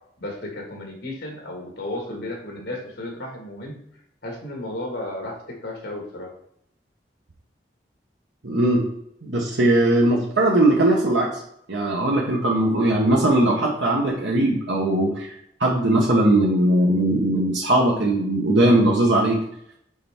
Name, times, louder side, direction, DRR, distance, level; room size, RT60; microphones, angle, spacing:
voice 1, 0.2-3.8 4.2-5.4 5.6-6.3, left 1 dB, 80° left, 1 dB, 1.6 m, -33 dB
voice 2, 8.4-8.9 9.2-11.3 11.7-15.3 15.6-19.4, right 1 dB, 90° right, -2 dB, 0.9 m, -19 dB
6.6 x 4.4 x 3.5 m, 0.72 s
head